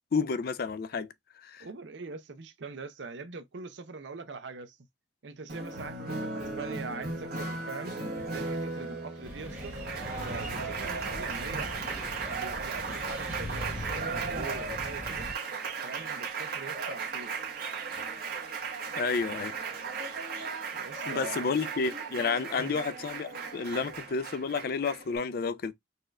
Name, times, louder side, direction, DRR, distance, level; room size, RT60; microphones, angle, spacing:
voice 1, 0.1-1.1 1.4-1.7 19.0-19.5 21.1-25.7, left 5 dB, 50° left, 0.4 m, -31 dB
voice 2, 1.6-4.8 5.2-8.0 8.3-9.8 10.1-11.9 12.3-15.3 15.8-17.3 20.7-21.6 22.6-22.8, right 4 dB, 65° right, 0.6 m, -42 dB
Applause, 5.5-25.2, right 4 dB, 50° right, 1.2 m, -36 dB
sound 1, 9.2-15.3, left 1 dB, 10° right, 1.3 m, -40 dB
4.2 x 2.4 x 3.2 m
head